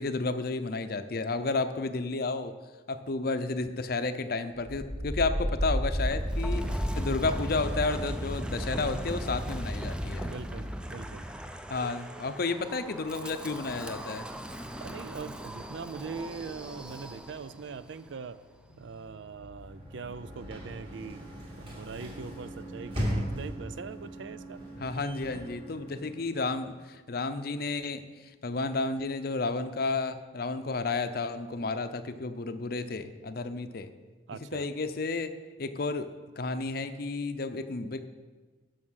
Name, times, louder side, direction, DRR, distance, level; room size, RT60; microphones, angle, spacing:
voice 1, 0.0-2.6 2.9-10.3 11.7-14.3 24.8-28.0 28.4-33.9 34.5-38.1, left 3 dB, 50° left, 10 dB, 0.6 m, -32 dB
Wind, 4.7-17.6, equal, 5° right, 0.5 m, -35 dB
voice 2, 10.3-11.3 14.8-18.4 18.8-21.2 21.6-24.6 34.3-34.7, right 5 dB, 70° right, 15 dB, 0.4 m, -41 dB
sound 1, 16.9-22.7, left 2 dB, 90° left, 0.9 m, -54 dB
Sliding door / Slam, 19.5-26.5, equal, 30° right, 2.3 m, -38 dB
11.0 x 6.5 x 6.3 m, 1.4 s
head